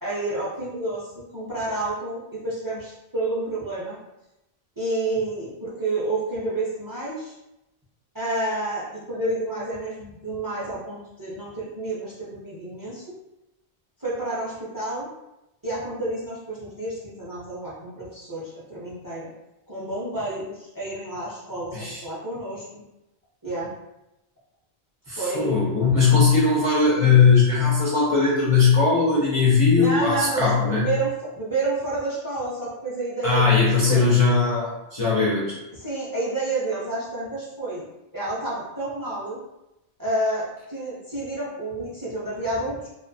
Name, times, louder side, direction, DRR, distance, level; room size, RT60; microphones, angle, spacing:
voice 1, 0.0-4.0 4.8-7.3 8.1-13.2 14.0-15.1 15.6-19.3 19.7-22.8 23.4-23.7 25.1-25.5 29.7-34.1 35.7-37.8 38.1-39.4 40.0-42.9, right 2 dB, 25° right, -7 dB, 0.5 m, -29 dB
voice 2, 25.1-30.9 33.2-35.6, left 5 dB, 45° left, -6 dB, 0.4 m, -19 dB
2.5 x 2.2 x 2.6 m, 0.92 s
omnidirectional pair, 1.0 m